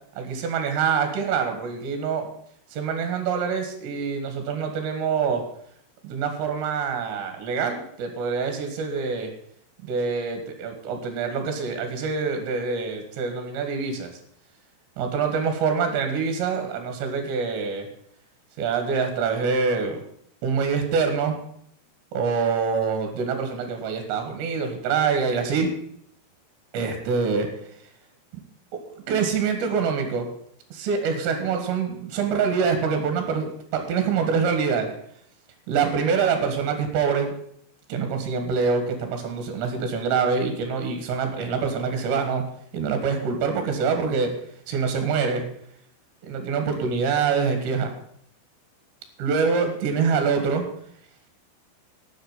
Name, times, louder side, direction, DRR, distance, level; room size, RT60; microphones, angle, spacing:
voice 1, 0.2-2.3 2.7-5.4 6.0-9.3 9.8-14.1 15.0-17.9 18.6-20.0 20.4-21.4 22.1-25.7 26.7-27.5 29.1-30.3 30.7-34.9 35.7-37.3 37.9-42.4 42.7-44.3 44.7-45.4 46.2-47.9 49.2-50.7, right 5 dB, 70° right, 5 dB, 3.9 m, -25 dB
10.5 x 7.5 x 9.4 m, 0.67 s
omnidirectional pair, 5.3 m